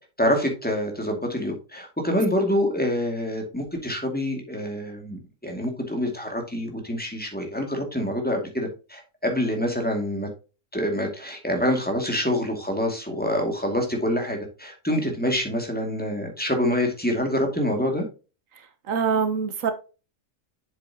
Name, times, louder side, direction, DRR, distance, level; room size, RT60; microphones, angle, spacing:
voice 1, 0.2-10.3 10.7-18.1, left 1 dB, 5° left, 2.3 m, -26 dB
voice 2, 18.5-19.7, right 6 dB, 85° right, 1.4 m, -25 dB
7.5 x 7.3 x 2.9 m
omnidirectional pair, 1.3 m